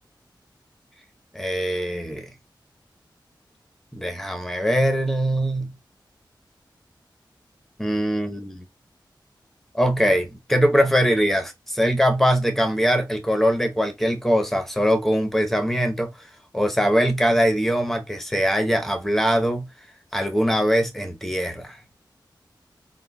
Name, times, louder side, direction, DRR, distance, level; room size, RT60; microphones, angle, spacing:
voice 1, 1.3-2.2 3.9-5.7 7.8-8.6 9.7-16.1 16.5-19.7 20.1-21.8, equal, 5° left, 0.8 m, -22 dB
3.7 x 2.2 x 2.2 m
wide cardioid pair, 65°, 8 cm